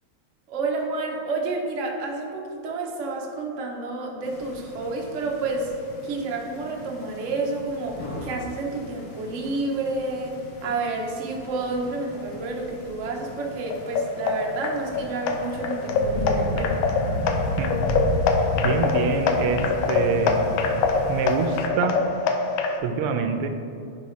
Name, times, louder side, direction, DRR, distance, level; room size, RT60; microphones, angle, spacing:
voice 1, 0.5-5.7 6.0-17.0, right 3 dB, 65° right, 0 dB, 0.7 m, -30 dB
sound 1, 4.2-21.7, left 1 dB, 60° left, 0.9 m, -34 dB
sound 2, 13.7-22.8, left 4 dB, 75° left, 1.4 m, -25 dB
voice 2, 18.5-19.6 19.9-20.5 21.1-21.9 22.8-23.5, right 5 dB, 85° right, 7 dB, 1.5 m, -25 dB
10.5 x 3.9 x 3.1 m, 2.6 s
omnidirectional pair, 2.4 m